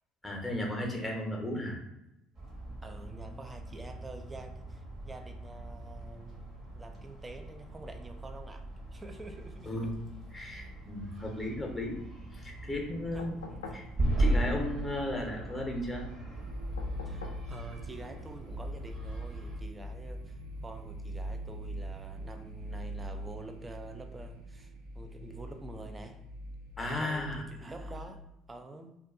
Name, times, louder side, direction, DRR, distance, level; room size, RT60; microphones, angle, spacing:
voice 1, 0.2-1.8 9.7-9.9 10.3-12.0 12.3-13.3 13.7-13.9 14.2-16.1 26.8-27.4, left 1 dB, 10° left, 1 dB, 0.7 m, -35 dB
sound 1, 2.3-19.6, right 1 dB, 40° right, 0.9 m, -38 dB
voice 2, 2.8-9.9 13.1-13.6 17.1-26.2 27.0-29.0, right 2 dB, 20° right, 7 dB, 0.4 m, -47 dB
sound 2, 13.2-13.9 16.8-17.5 19.1-19.2, left 4 dB, 90° left, 0.4 m, -45 dB
sound 3, 16.3-28.1, equal, 65° right, 0.6 m, -42 dB
2.5 x 2.3 x 2.4 m, 0.89 s
hypercardioid pair, 65°, 0 cm